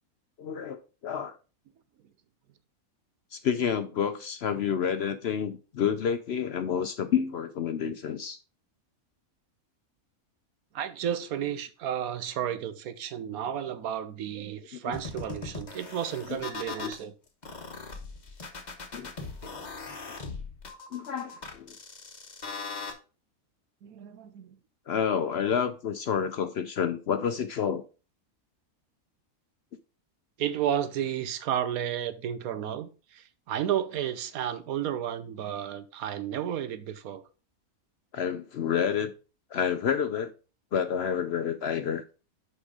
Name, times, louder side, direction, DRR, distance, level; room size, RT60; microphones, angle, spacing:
voice 1, 0.4-1.3 3.3-8.4 14.7-14.9 16.8-16.9 18.9-19.1 20.9-21.7 24.9-27.8 38.1-39.1 39.5-40.3 40.7-42.0, left 7 dB, 60° left, 0.7 m, -29 dB
voice 2, 10.7-17.1 23.8-24.6 30.4-37.2, right 10 dB, 80° right, 1.2 m, -32 dB
sound 1, 14.9-17.0 17.4-22.9, left 4 dB, 35° left, 1.1 m, -39 dB
6.2 x 5.4 x 4.8 m
omnidirectional pair, 1.5 m